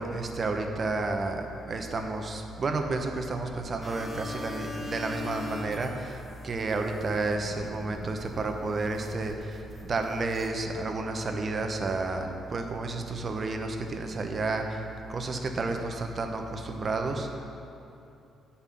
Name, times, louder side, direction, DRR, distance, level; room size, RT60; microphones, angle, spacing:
voice 1, 0.0-14.8 15.1-17.4, right 3 dB, 40° right, 4 dB, 0.9 m, -31 dB
sound 1, 3.8-8.4 8.9-10.5, left 2 dB, 15° left, 1.8 m, -41 dB
8.1 x 5.6 x 6.9 m, 2.8 s
cardioid pair, 90°, 0 cm